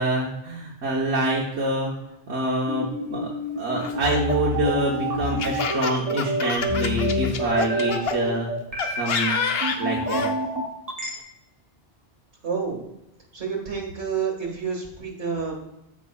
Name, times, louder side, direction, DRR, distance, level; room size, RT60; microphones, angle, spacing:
voice 1, 0.0-1.9 2.3-8.5 8.9-9.4 9.8-10.3, right 2 dB, 90° right, -4 dB, 1.4 m, -26 dB
sound 1, 2.7-11.1, equal, 35° right, 1.2 m, -27 dB
Laughter, 3.8-8.2 8.8-10.3, left 5 dB, 65° left, 0.9 m, -28 dB
voice 2, 12.4-12.8 13.3-15.5, right 6 dB, 70° right, 0 dB, 2.1 m, -29 dB
13.5 x 5.3 x 2.3 m, 0.88 s
omnidirectional pair, 1.1 m